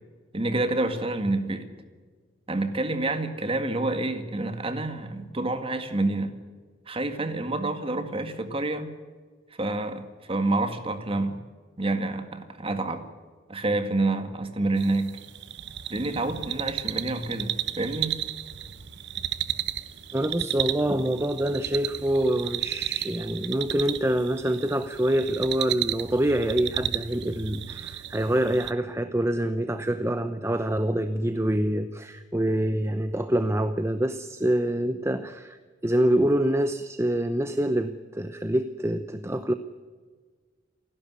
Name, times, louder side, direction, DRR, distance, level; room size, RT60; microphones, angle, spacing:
voice 1, 0.3-1.7 2.5-6.3 6.9-8.9 9.6-11.4 11.8-13.0 13.5-15.1 15.9-18.2, right 2 dB, 30° right, 8 dB, 2.0 m, -28 dB
sound 1, 14.8-28.7, right 12 dB, 65° right, 1.0 m, -33 dB
voice 2, 20.1-39.5, right 1 dB, 15° right, 10 dB, 0.8 m, -26 dB
28.0 x 12.0 x 9.6 m, 1.5 s
head